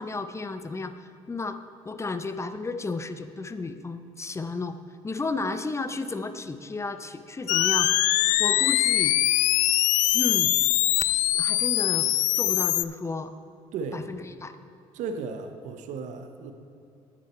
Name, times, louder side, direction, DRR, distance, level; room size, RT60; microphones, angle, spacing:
voice 1, 0.0-1.6 1.8-4.8 5.0-7.9 8.4-9.2 10.1-10.5 11.3-13.3 13.9-14.6, left 3 dB, 20° left, 10 dB, 0.6 m, -33 dB
sound 1, 7.5-12.8, left 16 dB, 70° left, 0.4 m, -22 dB
voice 2, 13.7-14.0 14.9-16.5, right 5 dB, 70° right, 7 dB, 0.9 m, -35 dB
10.0 x 8.9 x 4.3 m, 2.7 s
supercardioid pair, 70°, 13 cm